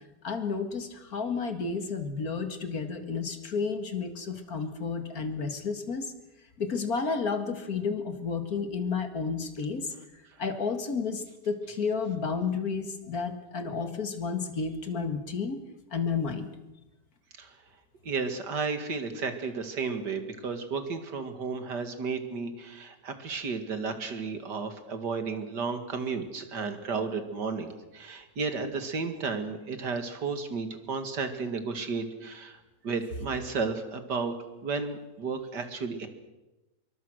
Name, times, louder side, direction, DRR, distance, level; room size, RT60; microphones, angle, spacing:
voice 1, 0.2-6.1 6.6-9.9 10.4-15.6 15.9-16.5, left 5 dB, 60° left, 8 dB, 2.4 m, -31 dB
voice 2, 18.0-32.6 32.8-34.4 34.6-36.1, right 4 dB, 90° right, 7 dB, 2.7 m, -33 dB
26.0 x 23.0 x 6.4 m, 1.0 s
omnidirectional pair, 1.8 m